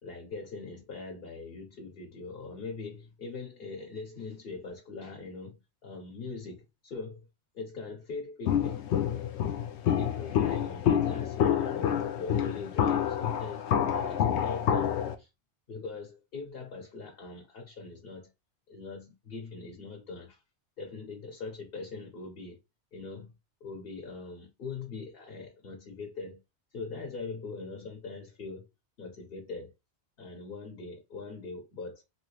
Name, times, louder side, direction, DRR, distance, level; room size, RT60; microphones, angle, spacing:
voice 1, 0.0-7.3 7.5-8.8 9.9-15.3 15.7-18.3 18.7-20.4 20.8-22.6 22.9-23.3 23.6-26.4 26.7-28.7 29.0-29.7 30.2-32.0, left 4 dB, 60° left, 1.1 m, -42 dB
Walk footsteps, 8.5-15.1, left 9 dB, 85° left, 0.9 m, -28 dB
3.1 x 2.8 x 3.0 m
omnidirectional pair, 1.1 m